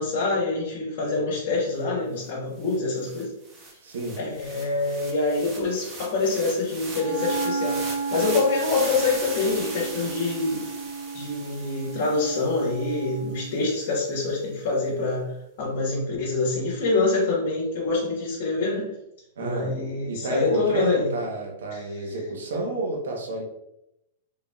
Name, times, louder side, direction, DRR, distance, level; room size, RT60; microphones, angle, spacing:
voice 1, 0.0-3.3 4.2-10.6 11.1-15.3 15.6-18.9 19.4-21.1 21.7-21.8, left 3 dB, 55° left, -6 dB, 1.5 m, -26 dB
sound 1, 2.3-2.4 2.6-13.0, right 2 dB, 25° right, 1.1 m, -39 dB
voice 2, 3.8-4.2 19.4-19.7 20.1-23.4, right 2 dB, 80° right, -1 dB, 1.0 m, -30 dB
Wind instrument woodwind instrument, 6.9-13.5, right 4 dB, 25° left, 0.8 m, -33 dB
3.8 x 3.7 x 2.4 m, 0.84 s
hypercardioid pair, 120°, 0 cm